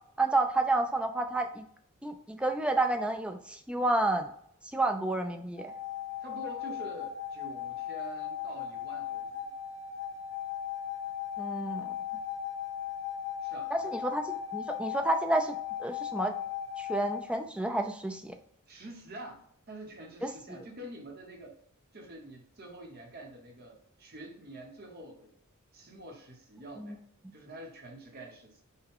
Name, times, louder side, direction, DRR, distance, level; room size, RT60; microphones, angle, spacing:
voice 1, 0.2-1.7 2.0-4.3 4.7-5.7 11.4-12.0 13.7-16.3 16.8-18.4 20.2-20.6 26.8-27.0, right 2 dB, 5° right, 5 dB, 0.3 m, -30 dB
sound 1, 5.6-17.2, left 9 dB, 60° left, 1.5 m, -37 dB
voice 2, 6.2-9.5 13.4-13.9 18.7-19.4 19.7-21.6 21.9-25.3 25.7-27.0 27.3-28.6, right 1 dB, 45° right, 2 dB, 0.9 m, -46 dB
5.6 x 2.2 x 3.6 m, 0.66 s
head